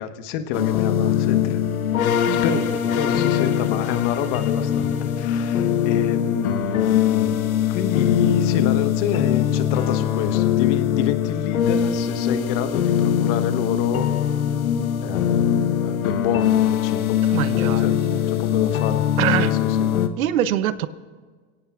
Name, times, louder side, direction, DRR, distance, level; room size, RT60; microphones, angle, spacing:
voice 1, 0.0-1.6 2.1-7.4 7.7-14.1 15.0-15.5 15.8-17.2 17.8-17.9 18.3-19.0 19.4-19.5, left 9 dB, 55° left, 8 dB, 1.3 m, -28 dB
sound 1, 0.5-20.1, left 9 dB, 85° left, 1.1 m, -21 dB
voice 2, 2.3-2.6 17.3-18.3 19.2-19.6 20.2-20.9, right 11 dB, 75° right, 14 dB, 0.8 m, -24 dB
28.0 x 17.0 x 2.4 m, 1.5 s
hypercardioid pair, 110°, 41 cm